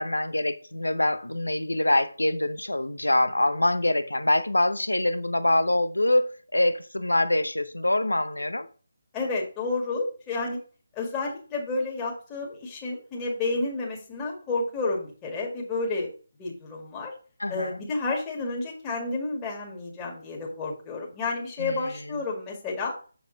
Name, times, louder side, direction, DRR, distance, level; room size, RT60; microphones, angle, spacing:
voice 1, 0.0-8.7 17.4-17.8 21.6-21.8, left 1 dB, 85° left, 0.9 m, -25 dB
voice 2, 9.1-10.6 10.9-16.1 16.4-17.1 17.5-22.9, left 3 dB, 15° left, 1.9 m, -30 dB
7.1 x 6.7 x 3.9 m
figure-of-eight pair, 150°, 0 cm